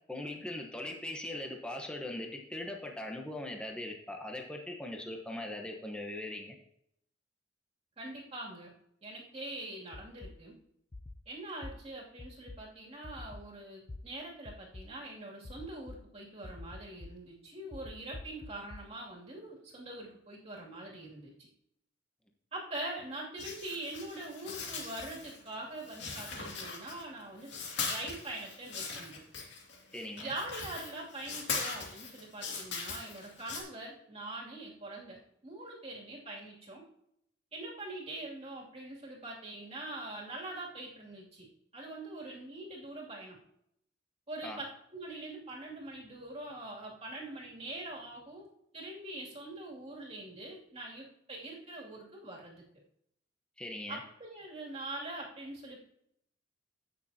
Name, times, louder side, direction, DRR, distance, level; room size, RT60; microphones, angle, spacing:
voice 1, 0.1-6.6 29.9-30.3 44.4-44.6 53.6-54.0, left 1 dB, 5° left, 1 dB, 1.1 m, -40 dB
voice 2, 8.0-8.7 9.0-10.5 11.3-21.5 22.5-27.5 27.8-29.2 30.2-36.8 37.5-41.5 41.7-43.4 44.3-48.5 48.7-52.6 53.9-55.8, right 2 dB, 30° right, -3 dB, 2.6 m, -43 dB
sound 1, 9.9-10.3 10.9-11.2 11.6-11.7 12.2-12.6 13.0-13.4 13.9-14.0 14.4-14.8 15.4-16.0 16.4-17.1 17.7-18.8, left 2 dB, 30° left, 0.5 m, -45 dB
sound 2, 23.4-25.5 25.8-27.2 27.4-33.6, left 4 dB, 60° left, 2.3 m, -40 dB
16.0 x 6.7 x 2.8 m, 0.75 s
head